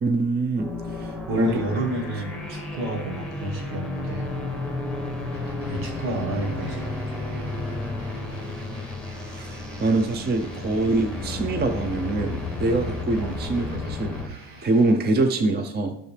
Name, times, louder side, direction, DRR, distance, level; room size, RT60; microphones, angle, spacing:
voice 1, 0.0-1.5 1.7-1.8 9.3-16.0, right 2 dB, 20° right, 6 dB, 0.5 m, -25 dB
sound 1, 0.6-14.3, left 2 dB, ahead, 1.2 m, -32 dB
voice 2, 1.3-4.3 5.2-5.3 5.7-6.9 9.8-9.9 13.2-13.3, right 1 dB, 70° right, 0 dB, 1.6 m, -30 dB
sound 2, 5.3-14.9, right 3 dB, 40° right, 1.8 m, -46 dB
9.3 x 6.6 x 3.3 m, 0.78 s
cardioid pair, 100°, 50 cm